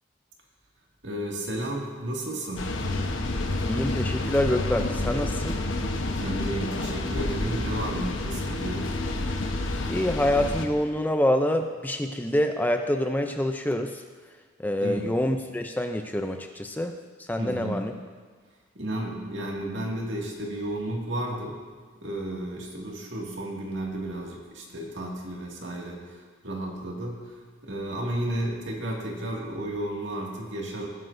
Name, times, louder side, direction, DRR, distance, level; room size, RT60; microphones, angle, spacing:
voice 1, 1.0-2.7 6.2-8.9 14.8-15.1 17.4-17.9 18.7-21.6 22.0-30.9, right 1 dB, 70° right, -2 dB, 2.1 m, -33 dB
sound 1, 2.6-10.7, left 2 dB, 80° left, 1.0 m, -29 dB
voice 2, 3.7-5.6 9.9-14.0 14.6-16.9 17.2-17.9, left 1 dB, 10° left, 5 dB, 0.4 m, -26 dB
18.5 x 9.2 x 2.6 m, 1.5 s
head